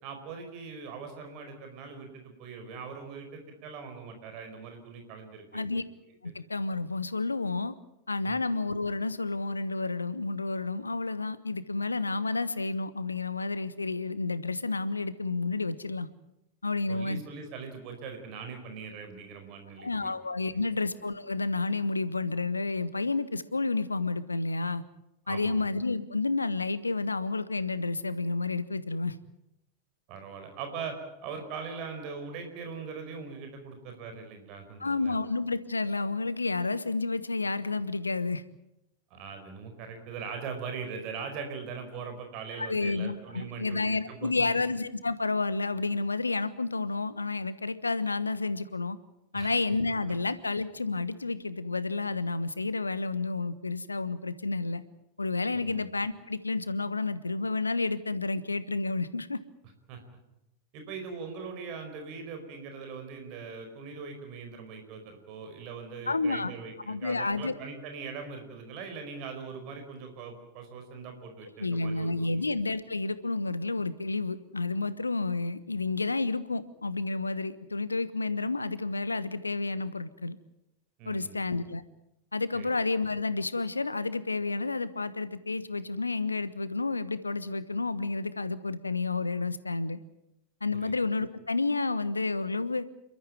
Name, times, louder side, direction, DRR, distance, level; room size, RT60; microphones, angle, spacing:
voice 1, 0.0-5.7 8.2-8.4 16.9-20.1 20.5-20.8 25.3-25.6 30.1-35.2 39.1-44.5 49.3-49.5 55.5-55.9 59.9-60.0 60.7-72.5 81.0-81.5 82.5-82.7 90.7-90.9, right 5 dB, 40° right, 5 dB, 4.7 m, -41 dB
voice 2, 5.5-5.8 6.2-7.7 8.1-16.1 16.6-17.2 19.8-24.8 25.3-29.2 34.8-38.4 42.6-49.0 49.3-54.8 55.2-59.4 66.1-66.5 66.9-67.5 71.6-80.4 81.0-81.8 82.3-90.0 90.6-92.8, left 3 dB, 80° left, 15 dB, 1.1 m, -30 dB
28.5 x 13.5 x 9.1 m, 0.88 s
figure-of-eight pair, 90°, 0 cm